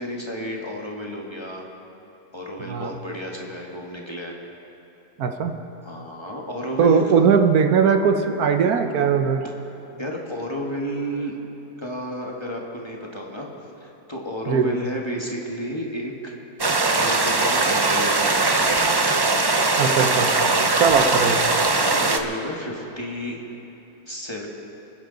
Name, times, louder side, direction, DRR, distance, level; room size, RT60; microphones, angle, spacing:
voice 1, 0.0-1.7 2.3-4.3 5.8-7.3 10.0-11.4 11.8-13.5 13.8-16.3 16.9-19.0 20.0-20.7 21.5-23.4 24.1-24.5, equal, 20° left, -1 dB, 1.5 m, -32 dB
voice 2, 5.2-5.5 6.8-9.4 14.5-14.8 19.8-20.3 20.8-21.4, right 6 dB, 75° right, 6 dB, 1.3 m, -19 dB
sound 1, 16.6-22.2, right 3 dB, 40° right, 0.3 m, -20 dB
28.0 x 10.5 x 3.9 m, 3.0 s
omnidirectional pair, 1.6 m